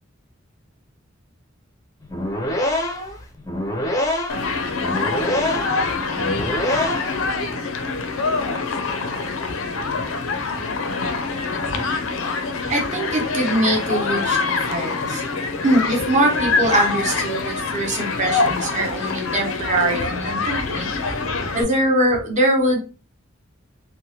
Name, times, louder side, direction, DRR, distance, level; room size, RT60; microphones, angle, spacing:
sound 1, 2.0-7.3, left 1 dB, 15° left, 0.4 m, -25 dB
Human group actions, 4.3-21.6, left 4 dB, 75° left, 0.4 m, -25 dB
voice 1, 12.7-15.2 15.6-21.2 21.5-22.8, right 1 dB, 35° right, 0 dB, 0.8 m, -22 dB
3.0 x 2.1 x 2.7 m, 0.32 s
head